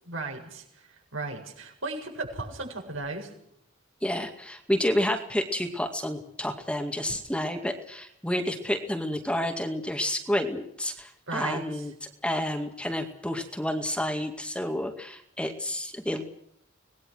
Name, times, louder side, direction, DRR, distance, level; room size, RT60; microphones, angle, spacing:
voice 1, 0.0-3.3 11.3-11.6, right 3 dB, 80° right, 2 dB, 7.7 m, -35 dB
voice 2, 4.0-11.9 12.2-16.2, left 1 dB, 5° left, 5 dB, 2.1 m, -30 dB
25.5 x 19.5 x 6.4 m, 0.72 s
head